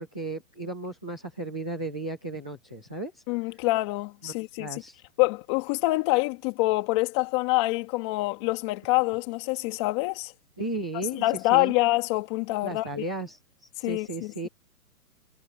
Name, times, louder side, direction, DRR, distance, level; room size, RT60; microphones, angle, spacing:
voice 1, 0.0-3.2 4.2-5.0 10.6-11.2 11.5-11.8 12.6-14.5, right 2 dB, 5° left, 0.6 m, -35 dB
voice 2, 3.3-4.8 5.2-10.3 11.2-13.0 13.8-14.5, left 21 dB, 20° left, 2.8 m, -26 dB
hypercardioid pair, 175°, 44 cm